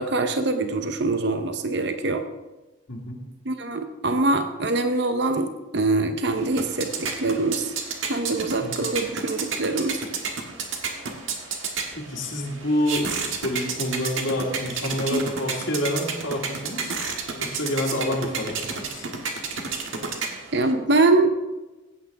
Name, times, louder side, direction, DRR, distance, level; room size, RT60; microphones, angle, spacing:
voice 1, 0.0-2.2 3.5-7.7 8.1-10.0 15.1-15.2 20.5-21.3, right 2 dB, 55° right, 7 dB, 0.7 m, -24 dB
voice 2, 2.9-3.2 8.6-8.8 11.9-17.0 17.4-19.1, left 1 dB, 75° left, -2 dB, 2.0 m, -28 dB
sound 1, 6.2-20.7, right 5 dB, 75° right, 1.4 m, -32 dB
16.0 x 8.4 x 3.5 m, 1.1 s
head